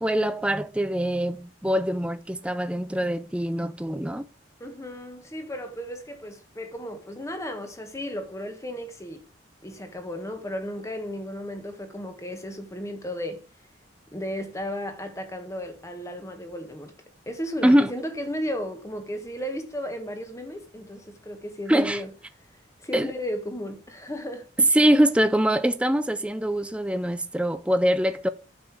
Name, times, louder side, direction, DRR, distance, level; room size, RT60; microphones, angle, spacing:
voice 1, 0.0-4.2 17.6-17.9 21.7-22.0 22.9-23.1 24.6-28.3, right 1 dB, 5° right, 0.5 m, -23 dB
voice 2, 4.6-9.2 9.6-13.4 14.1-16.9 17.3-22.1 22.8-24.5, equal, 15° left, 1.5 m, -34 dB
9.3 x 6.6 x 4.9 m
head